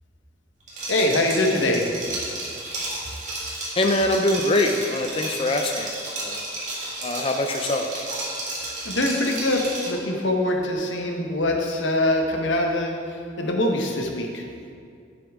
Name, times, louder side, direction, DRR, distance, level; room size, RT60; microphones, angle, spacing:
Liquid, 0.7-10.0, right 2 dB, 40° right, 2.1 m, -32 dB
voice 1, 0.9-1.8 8.8-12.9 13.4-14.4, left 1 dB, 90° left, 2 dB, 1.1 m, -23 dB
voice 2, 3.8-5.9 6.2-6.4 7.0-7.9, left 1 dB, 30° left, 4 dB, 0.4 m, -23 dB
10.5 x 6.9 x 3.6 m, 2.3 s
head